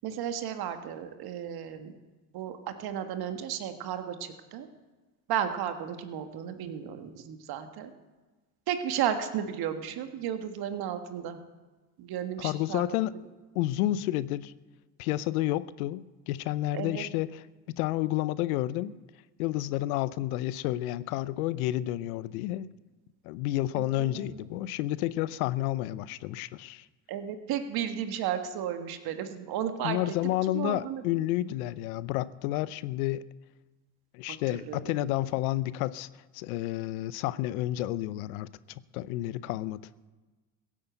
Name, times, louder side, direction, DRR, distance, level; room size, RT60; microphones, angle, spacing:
voice 1, 0.0-1.9 2.3-4.7 5.3-7.9 8.7-11.4 12.0-13.0 16.7-17.0 23.8-24.5 27.1-30.1 30.5-31.0 34.5-35.2, right 9 dB, 55° right, 8 dB, 1.7 m, -34 dB
voice 2, 12.4-13.1 13.5-14.5 15.0-17.3 17.8-18.9 19.4-22.7 23.2-26.9 29.8-33.3 34.1-36.1 36.3-38.5 38.9-39.8, left 15 dB, 75° left, 18 dB, 0.7 m, -30 dB
16.0 x 8.5 x 8.0 m, 1.2 s
hypercardioid pair, 75°, 43 cm